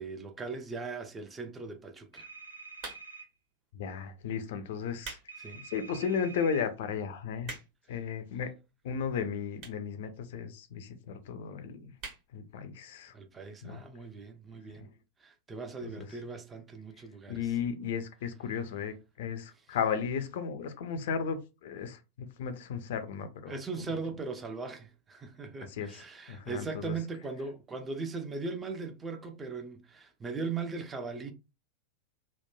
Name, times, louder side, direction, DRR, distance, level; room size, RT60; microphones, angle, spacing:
voice 1, 0.0-2.3 5.4-5.6 13.1-14.9 15.2-17.5 23.4-31.3, right 4 dB, 15° right, 0.5 m, -39 dB
sound 1, 2.1-3.3 5.3-6.6, right 4 dB, 90° right, 0.4 m, -47 dB
sound 2, 2.8-3.3 4.0-4.2 4.8-5.3 5.7-5.8 6.4-6.5 6.7-6.8 7.1-7.9 8.7-8.8 9.6-9.9 10.2-10.3 10.5-10.6 10.8-10.9 11.2-11.5 12.0-12.2 12.6-12.7 12.9-13.0, right 4 dB, 40° right, 1.2 m, -43 dB
voice 2, 3.7-5.2 5.5-7.5 7.9-8.5 8.8-11.9 12.3-13.1 13.6-13.8 14.7-14.9 15.8-16.1 17.3-23.6 25.7-27.0, left 7 dB, 55° left, 0.4 m, -35 dB
3.0 x 2.1 x 2.2 m
figure-of-eight pair, 90°, 0 cm